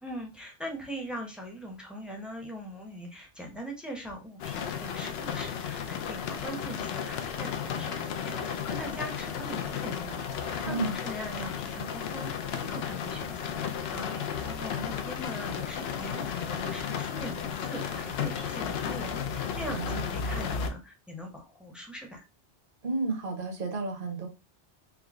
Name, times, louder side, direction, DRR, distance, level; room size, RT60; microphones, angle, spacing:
voice 1, 0.0-22.2, equal, ahead, 1 dB, 0.7 m, -41 dB
sound 1, 4.4-20.7, left 7 dB, 70° left, 0.8 m, -34 dB
sound 2, 8.2-15.1, left 1 dB, 90° right, 1.4 m, -51 dB
voice 2, 10.7-11.0 19.7-20.0 22.8-24.3, right 3 dB, 55° right, 4 dB, 1.0 m, -32 dB
3.7 x 2.1 x 3.5 m, 0.29 s
omnidirectional pair, 1.1 m